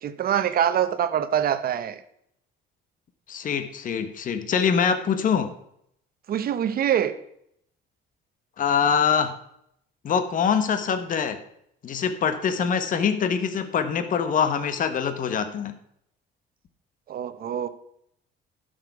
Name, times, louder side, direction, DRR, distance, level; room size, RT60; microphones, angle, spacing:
voice 1, 0.0-2.0 6.3-7.1 17.1-17.7, right 9 dB, 50° right, 12 dB, 0.9 m, -24 dB
voice 2, 3.3-5.5 8.6-9.3 10.0-11.4 11.8-15.7, left 7 dB, 45° left, 9 dB, 1.0 m, -24 dB
12.0 x 6.6 x 4.7 m, 0.72 s
cardioid pair, 135°, 20 cm